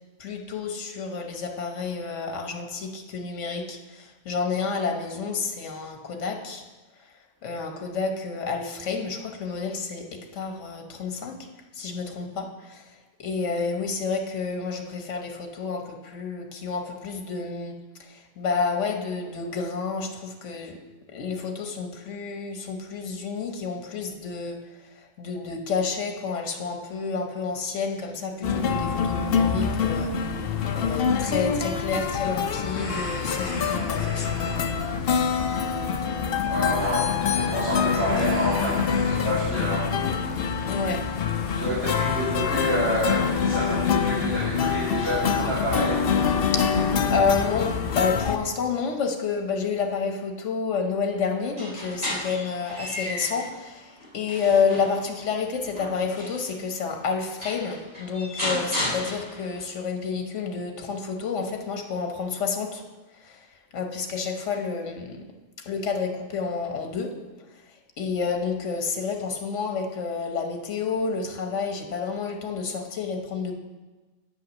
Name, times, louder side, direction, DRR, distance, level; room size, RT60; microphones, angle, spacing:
voice 1, 0.2-6.6 7.4-11.4 11.8-17.7 18.0-20.8 21.1-30.1 30.7-34.7 40.6-41.0 46.5-46.8 47.1-62.8 63.2-63.5 63.7-65.2 65.6-67.1 68.0-73.5, left 5 dB, 80° left, 4 dB, 1.3 m, -29 dB
sound 1, 28.4-48.4, left 6 dB, 60° left, 0.7 m, -25 dB
sound 2, 32.7-47.1, left 1 dB, 15° left, 3.2 m, -39 dB
voice 2, 36.5-40.1 40.8-40.9 41.6-46.0, equal, 85° right, -10 dB, 2.3 m, -28 dB
sound 3, 51.4-53.5 54.0-56.6 57.1-57.2 57.4-59.6, left 1 dB, 40° right, 3.5 m, -33 dB
8.6 x 5.6 x 6.2 m, 1.2 s
omnidirectional pair, 1.2 m